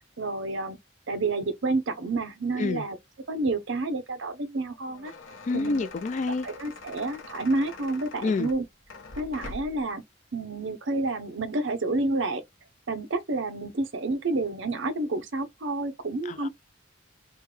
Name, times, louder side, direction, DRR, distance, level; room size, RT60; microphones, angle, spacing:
voice 1, 0.2-0.8 1.1-3.0 3.3-5.1 5.5-5.9 6.4-8.7 9.2-10.0 10.3-12.4 12.9-16.5, right 2 dB, 65° right, 0.7 m, -29 dB
sound 1, 4.7-9.9, left 3 dB, 85° left, 0.9 m, -44 dB
voice 2, 5.5-6.5 8.2-8.5 16.3-16.5, left 3 dB, 35° left, 0.3 m, -28 dB
3.3 x 2.2 x 3.1 m
head